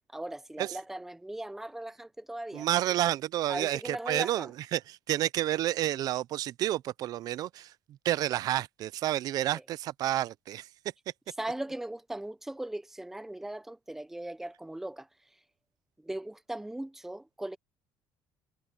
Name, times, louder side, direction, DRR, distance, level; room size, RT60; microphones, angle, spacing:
voice 1, 0.0-2.7 3.5-4.5 11.4-15.1 16.0-17.6, right 1 dB, 5° right, 0.6 m, -38 dB
voice 2, 2.5-7.7 8.0-10.7, right 13 dB, 50° right, 0.5 m, -30 dB
cardioid pair, 170°, 8 cm